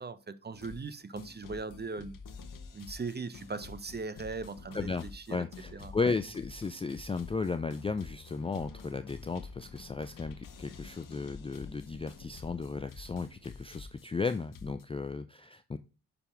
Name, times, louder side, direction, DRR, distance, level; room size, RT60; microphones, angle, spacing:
voice 1, 0.0-2.1 2.7-5.4 5.7-5.9, right 4 dB, 25° right, 0.9 m, -39 dB
sound 1, 0.5-0.9 1.2-14.8, left 5 dB, 50° left, 1.2 m, -49 dB
voice 2, 4.7-15.8, left 4 dB, 15° left, 0.4 m, -35 dB
6.7 x 3.5 x 5.8 m
hypercardioid pair, 40°, 40 cm